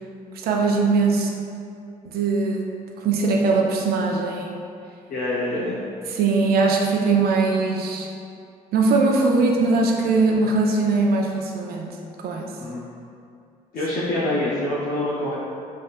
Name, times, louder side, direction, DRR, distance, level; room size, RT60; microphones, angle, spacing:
voice 1, 0.3-1.3 2.0-2.6 3.0-4.6 6.1-8.1 8.7-11.9 12.2-12.5, right 3 dB, 60° right, 1 dB, 0.5 m, -21 dB
voice 2, 5.1-5.8 12.6-12.9 13.7-15.4, left 1 dB, 55° left, -8 dB, 0.6 m, -25 dB
3.5 x 2.6 x 2.3 m, 2.4 s
hypercardioid pair, 50°, 18 cm